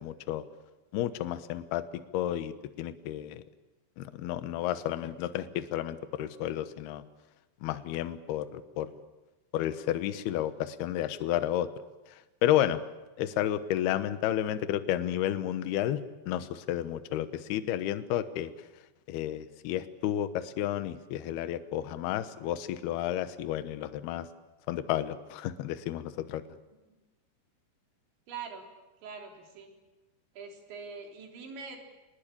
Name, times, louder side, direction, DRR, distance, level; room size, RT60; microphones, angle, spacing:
voice 1, 0.0-0.4 0.9-1.9 2.1-3.4 4.0-7.0 7.6-8.9 9.5-11.7 12.1-12.8 13.2-18.5 19.1-24.3 24.7-26.4, left 12 dB, 70° left, 11 dB, 2.9 m, -31 dB
voice 2, 28.3-28.7 29.0-29.7 30.4-31.8, right 5 dB, 80° right, 2 dB, 5.9 m, -43 dB
27.5 x 20.0 x 8.6 m, 1.1 s
omnidirectional pair, 5.1 m